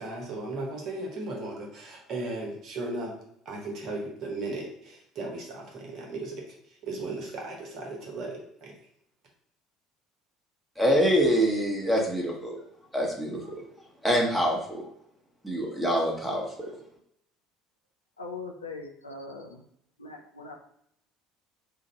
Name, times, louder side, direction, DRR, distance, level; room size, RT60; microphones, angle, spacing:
voice 1, 0.0-3.1 3.4-6.4 6.8-8.7, right 2 dB, 55° right, 0 dB, 1.1 m, -36 dB
voice 2, 10.8-12.6 12.9-13.6 14.0-14.9 15.4-16.7, equal, ahead, -2 dB, 1.2 m, -25 dB
voice 3, 18.2-19.6 20.0-20.6, left 3 dB, 90° left, 2 dB, 0.5 m, -40 dB
2.8 x 2.5 x 4.3 m, 0.71 s
figure-of-eight pair, 60°, 0 cm